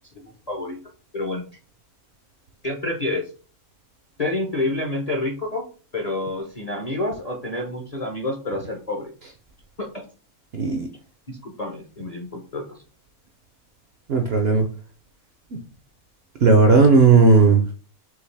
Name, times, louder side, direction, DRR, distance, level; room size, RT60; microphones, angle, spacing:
voice 1, 0.1-0.8 1.1-1.4 2.6-3.3 4.2-5.7 5.9-9.1 9.8-10.1 11.3-12.8, left 2 dB, 35° left, 0 dB, 0.6 m, -28 dB
voice 2, 10.5-10.9 14.1-14.7 15.5-15.6 16.4-17.6, right 4 dB, 60° right, 4 dB, 0.7 m, -15 dB
4.9 x 2.9 x 3.2 m, 0.36 s
omnidirectional pair, 1.6 m